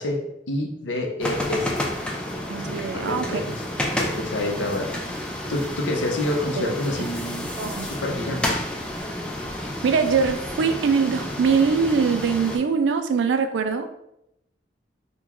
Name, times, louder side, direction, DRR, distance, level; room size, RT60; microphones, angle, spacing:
voice 1, 0.0-1.8 2.6-3.6 4.0-4.9 5.5-7.5 7.9-8.6, left 1 dB, 90° left, 2 dB, 0.6 m, -28 dB
sound 1, 1.2-12.6, left 1 dB, 5° left, 0.3 m, -30 dB
voice 2, 2.5-3.4 6.6-6.7 7.6-7.9 9.8-13.9, right 5 dB, 85° right, 8 dB, 0.3 m, -22 dB
3.7 x 2.2 x 2.9 m, 0.81 s
head